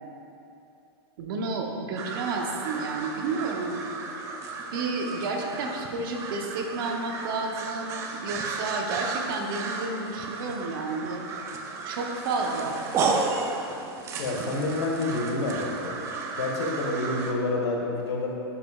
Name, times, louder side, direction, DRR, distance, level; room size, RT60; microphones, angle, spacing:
voice 1, 1.2-3.8 4.7-11.2 11.9-12.9, right 3 dB, 60° right, 2 dB, 0.9 m, -31 dB
sound 1, 2.0-17.3, right 4 dB, 20° right, 0.4 m, -33 dB
voice 2, 14.2-16.0 16.4-18.3, left 2 dB, 85° left, 0 dB, 1.3 m, -28 dB
10.5 x 5.0 x 2.4 m, 2.8 s
supercardioid pair, 155°, 13 cm